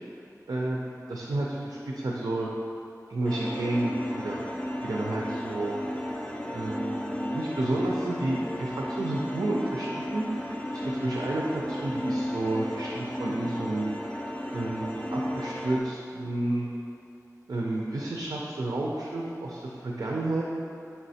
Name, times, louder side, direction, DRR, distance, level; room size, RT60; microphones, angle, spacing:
voice 1, 0.5-2.5 3.1-4.4 4.8-5.8 6.5-13.9 14.5-16.7 17.5-20.4, right 2 dB, 80° right, -3 dB, 0.3 m, -31 dB
sound 1, 3.2-15.8, equal, 20° left, 0.3 m, -34 dB
4.2 x 3.1 x 2.7 m, 2.6 s
wide cardioid pair, 55°, 6 cm